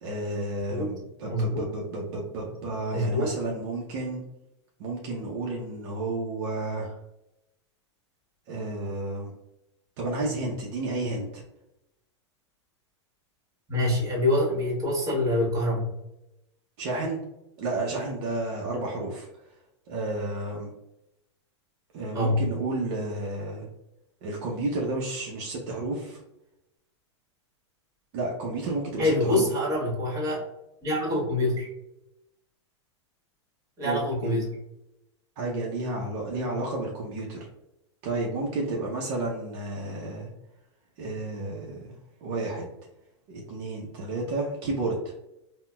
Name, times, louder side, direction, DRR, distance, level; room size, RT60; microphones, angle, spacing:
voice 1, 0.0-4.2 4.8-7.0 8.5-9.3 10.0-11.4 16.8-17.2 17.6-19.3 19.9-20.7 21.9-23.7 24.2-26.2 28.1-29.5 33.8-34.4 35.4-37.4 38.0-40.3 41.0-41.9 42.2-42.7 43.3-45.1, right 2 dB, 55° right, -2 dB, 0.7 m, -31 dB
voice 2, 1.3-1.7 2.9-3.3 13.7-15.9 22.1-22.4 29.0-30.4 30.8-31.7 33.8-34.6, left 1 dB, 25° right, -2 dB, 1.5 m, -25 dB
3.9 x 2.2 x 2.2 m, 0.88 s
hypercardioid pair, 110°, 15 cm